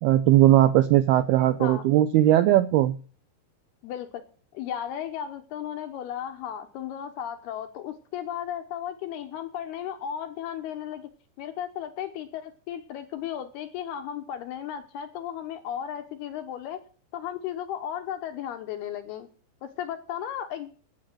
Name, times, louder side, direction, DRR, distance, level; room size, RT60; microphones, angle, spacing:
voice 1, 0.0-2.9, right 13 dB, 80° right, 10 dB, 2.3 m, -19 dB
voice 2, 3.8-4.2 4.5-11.1 11.4-16.8 17.1-19.3 19.6-20.7, left 10 dB, 70° left, 7 dB, 2.7 m, -35 dB
11.5 x 8.7 x 7.7 m, 0.40 s
omnidirectional pair, 5.2 m